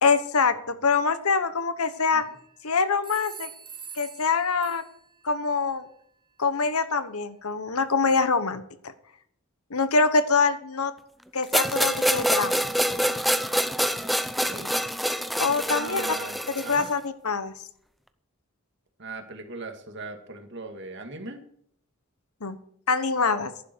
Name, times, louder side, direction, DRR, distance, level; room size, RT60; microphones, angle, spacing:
voice 1, 0.0-2.2 2.6-3.5 3.9-4.8 5.2-5.9 6.4-8.6 9.7-10.9 11.3-12.7 15.4-16.1 16.5-17.5 22.4-22.6 22.9-23.5, left 4 dB, 80° left, 11 dB, 1.3 m, -24 dB
sound 1, 1.8-2.5 3.0-5.2, right 6 dB, 20° right, 1.4 m, -44 dB
sound 2, 11.5-16.9, equal, ahead, 0.6 m, -26 dB
voice 2, 14.4-14.7 15.7-16.9 19.0-21.4, right 3 dB, 50° right, 5 dB, 2.2 m, -39 dB
15.5 x 11.0 x 4.7 m, 0.67 s
head